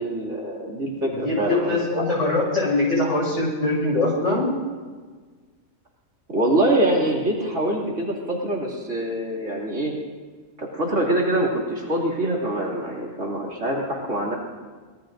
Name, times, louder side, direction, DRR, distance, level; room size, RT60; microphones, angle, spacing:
voice 1, 0.0-2.0 6.3-9.9 10.6-14.4, right 1 dB, 60° right, -3 dB, 2.9 m, -24 dB
voice 2, 1.2-4.5, left 2 dB, 60° left, -3 dB, 5.9 m, -22 dB
24.0 x 19.0 x 2.6 m, 1.5 s
omnidirectional pair, 1.4 m